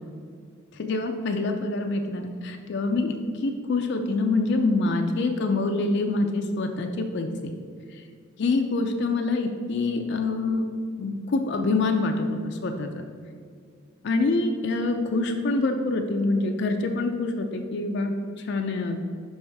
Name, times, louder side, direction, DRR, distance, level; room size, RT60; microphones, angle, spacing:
voice 1, 0.8-3.1 3.4-7.5 8.4-10.7 11.0-13.0 14.0-18.1 18.5-19.0, left 3 dB, 55° left, 4 dB, 0.4 m, -25 dB
5.4 x 5.4 x 3.4 m, 2.2 s
head